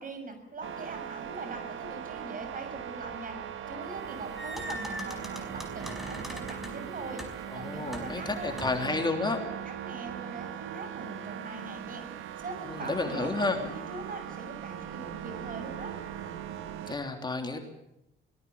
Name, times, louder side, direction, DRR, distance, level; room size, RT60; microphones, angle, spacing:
voice 1, 0.0-3.4 3.7-12.0 12.4-15.9, right 3 dB, 45° right, 7 dB, 7.0 m, -42 dB
sound 1, 0.6-17.0, right 10 dB, 85° right, 1.7 m, -40 dB
sound 2, 4.0-8.9, left 1 dB, ahead, 5.1 m, -42 dB
voice 2, 7.5-9.4 12.7-13.6 16.9-17.6, left 3 dB, 20° left, 4 dB, 3.2 m, -31 dB
24.5 x 19.0 x 7.1 m, 0.85 s
cardioid pair, 90°, 20 cm